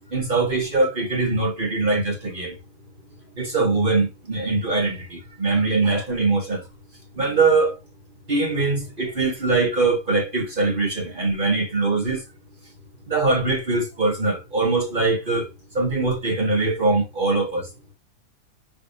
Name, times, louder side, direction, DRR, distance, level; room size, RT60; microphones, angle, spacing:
voice 1, 0.1-2.6 3.4-6.6 7.2-7.8 8.3-12.2 13.1-15.5 15.7-17.7, right 3 dB, 35° right, 1.1 m, -22 dB
5.4 x 3.3 x 2.6 m
omnidirectional pair, 1.7 m